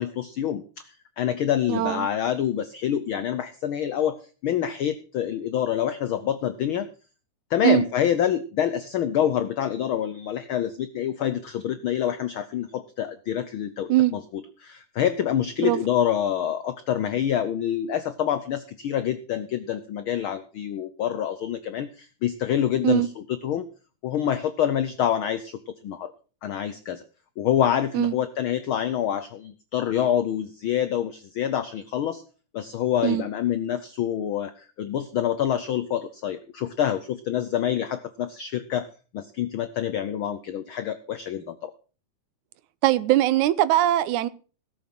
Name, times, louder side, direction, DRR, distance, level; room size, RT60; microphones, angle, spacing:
voice 1, 0.0-6.9 7.5-23.7 24.0-26.1 26.4-27.0 27.4-32.2 32.5-38.9 39.1-41.7, left 10 dB, 85° left, 1.1 m, -27 dB
voice 2, 1.7-2.1 7.6-7.8 13.9-14.1 15.6-15.8 22.8-23.1 27.9-28.1 33.0-33.3 42.8-44.3, right 14 dB, 85° right, 2.2 m, -21 dB
17.5 x 7.2 x 6.0 m
omnidirectional pair, 3.3 m